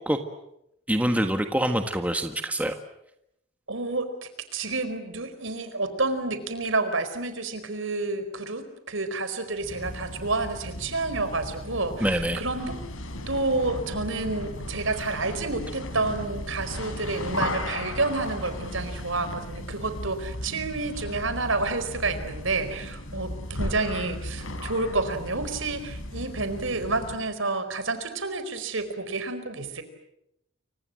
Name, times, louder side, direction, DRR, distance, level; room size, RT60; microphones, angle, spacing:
voice 1, 0.9-2.7 12.0-12.4, right 1 dB, 5° right, 6 dB, 1.6 m, -25 dB
voice 2, 3.7-12.8 13.3-29.8, right 3 dB, 70° right, 10 dB, 4.6 m, -29 dB
sound 1, 9.6-27.3, left 1 dB, 80° left, 4.1 m, -36 dB
29.5 x 25.0 x 7.7 m, 0.80 s
head